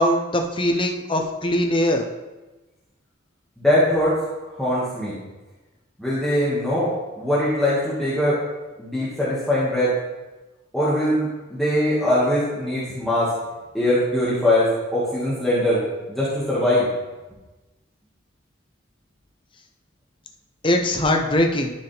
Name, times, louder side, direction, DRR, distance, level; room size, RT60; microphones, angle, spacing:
voice 1, 0.0-2.1 20.6-21.7, left 1 dB, 25° left, 3 dB, 0.8 m, -21 dB
voice 2, 3.6-4.1 4.5-5.1 6.0-6.9 7.2-8.4 8.8-9.9 10.7-13.3 13.7-15.8 16.1-16.9, left 1 dB, ahead, -10 dB, 1.9 m, -21 dB
12.5 x 5.4 x 3.5 m, 1.1 s
head